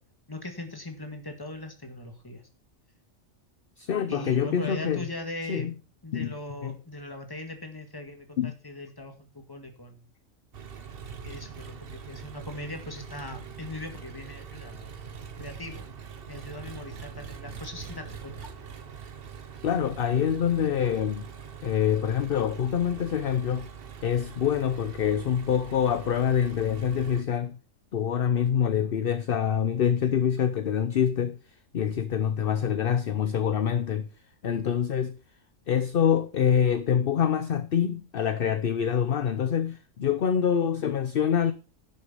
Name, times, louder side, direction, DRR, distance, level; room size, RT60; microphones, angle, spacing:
voice 1, 0.3-2.4 4.1-5.7 6.0-10.1 11.2-14.9 15.4-15.8 16.3-18.5, left 1 dB, 15° left, 1.8 m, -39 dB
voice 2, 3.8-5.0 5.5-5.7 6.1-6.3 6.6-6.7 8.4-8.5 19.6-21.3 21.6-23.7 24.0-27.6 27.9-31.4 31.7-34.1 34.4-35.1 35.7-41.5, left 8 dB, 55° left, 0.8 m, -25 dB
Engine, 10.5-27.2, right 6 dB, 50° right, 1.1 m, -43 dB
11.0 x 6.5 x 5.5 m
omnidirectional pair, 1.3 m